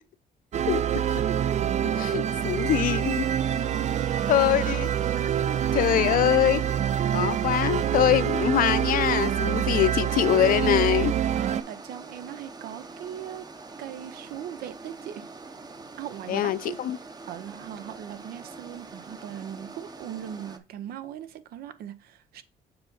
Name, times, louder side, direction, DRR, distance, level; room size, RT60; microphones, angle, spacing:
sound 1, 0.5-11.6, right 9 dB, 50° right, 0.4 m, -26 dB
voice 1, 0.6-1.2 1.9-3.2 4.3-4.9 5.7-6.6 7.1-11.1 16.3-17.0, left 12 dB, 65° left, 0.5 m, -24 dB
sound 2, 2.3-20.6, right 3 dB, 25° right, 0.8 m, -44 dB
voice 2, 3.4-4.5 5.4-6.3 11.3-13.5 13.8-15.3 16.0-16.8 17.3-22.4, right 10 dB, 85° right, 0.8 m, -39 dB
6.9 x 3.9 x 4.0 m
cardioid pair, 105°, 15 cm